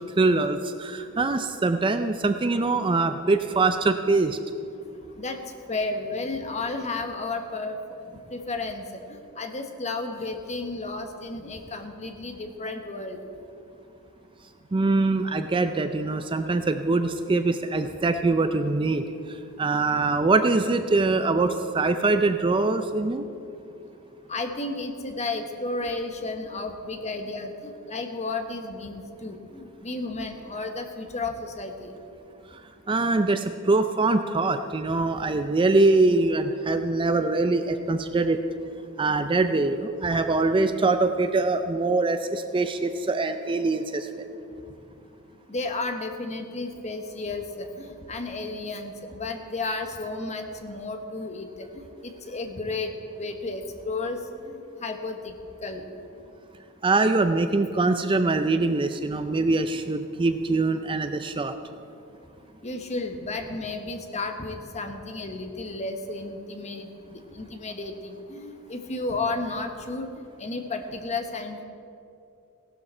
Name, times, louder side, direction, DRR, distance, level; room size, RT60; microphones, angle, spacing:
voice 1, 0.2-4.4 14.7-19.0 19.6-23.3 32.9-38.4 39.0-44.1 56.8-61.5, right 3 dB, 20° right, 9 dB, 0.4 m, -23 dB
voice 2, 5.7-7.8 8.1-8.8 9.1-13.2 24.3-31.9 45.5-54.2 54.4-55.3 55.6-55.8 62.6-70.1 70.4-71.6, left 3 dB, 30° left, 5 dB, 1.1 m, -33 dB
16.5 x 12.5 x 4.4 m, 2.7 s
head